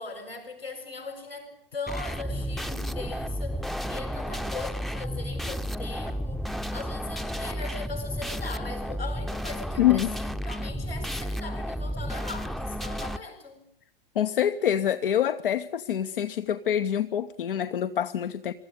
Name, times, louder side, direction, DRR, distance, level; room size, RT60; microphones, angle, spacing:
voice 1, 0.0-13.7, left 3 dB, 90° left, 7.4 m, -39 dB
sound 1, 1.9-13.2, equal, ahead, 0.8 m, -32 dB
voice 2, 9.8-10.1 14.1-18.5, left 10 dB, 65° left, 1.0 m, -25 dB
23.5 x 14.0 x 9.9 m
figure-of-eight pair, 95°, 29 cm